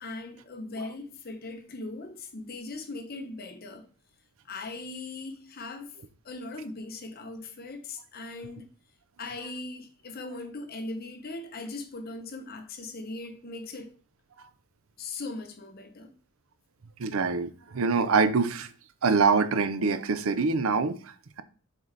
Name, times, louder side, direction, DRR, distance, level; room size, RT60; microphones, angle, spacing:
voice 1, 0.0-3.9 4.5-5.9 6.2-8.7 9.2-14.0 15.0-16.1, left 2 dB, 45° left, 0.8 m, -39 dB
voice 2, 17.0-18.7 19.0-21.4, right 4 dB, 70° right, 0.6 m, -25 dB
7.4 x 4.0 x 3.3 m
head